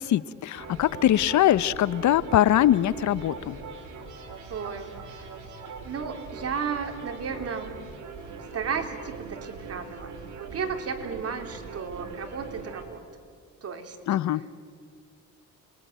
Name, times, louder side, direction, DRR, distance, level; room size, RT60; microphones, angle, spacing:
voice 1, 0.0-3.6 14.1-14.4, left 12 dB, 70° left, 17 dB, 0.9 m, -22 dB
sound 1, 0.5-12.9, right 4 dB, 75° right, 4.7 m, -41 dB
voice 2, 4.5-5.3 5.9-7.8 8.5-10.1 10.4-13.0 13.6-14.0, right 6 dB, 55° right, 5 dB, 3.5 m, -34 dB
29.5 x 22.0 x 9.2 m, 2.1 s
cardioid pair, 90°, 30 cm